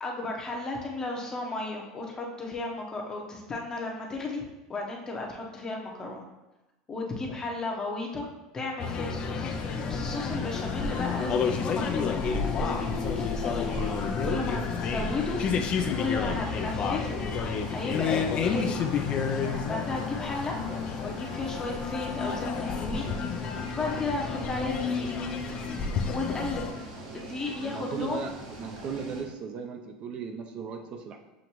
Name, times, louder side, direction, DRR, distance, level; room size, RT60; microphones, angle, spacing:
voice 1, 0.0-4.4 4.7-6.2 6.9-8.3 8.5-15.4 15.9-17.2 17.7-18.8 19.7-20.6 21.0-23.1 23.7-25.1 26.1-26.9 27.1-28.2, left 3 dB, 25° left, 0 dB, 0.9 m, -34 dB
sound 1, 8.8-26.7, left 6 dB, 40° left, 0.4 m, -30 dB
sound 2, 9.4-29.2, right 1 dB, 90° right, 1.6 m, -43 dB
voice 2, 27.6-31.2, right 5 dB, 45° right, 4 dB, 0.5 m, -37 dB
7.0 x 2.5 x 3.0 m, 1.0 s
supercardioid pair, 115°, 3 cm